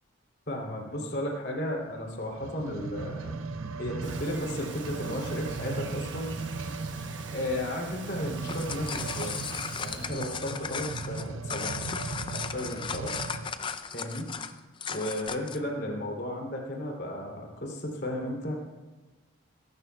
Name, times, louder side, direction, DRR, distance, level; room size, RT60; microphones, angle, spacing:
voice 1, 0.5-3.4 3.8-7.0 7.3-9.4 9.8-11.8 12.3-13.2 13.9-14.3 14.9-18.5, left 1 dB, 50° left, 0 dB, 2.8 m, -34 dB
sound 1, 2.3-13.6 14.2-14.3, right 4 dB, 75° right, 0.6 m, -38 dB
Bird vocalization bird call bird song, 4.0-10.1, right 4 dB, 55° right, 1.2 m, -44 dB
sound 2, 8.3-15.7, left 6 dB, 25° left, 0.4 m, -36 dB
23.0 x 12.0 x 2.3 m, 1.2 s
head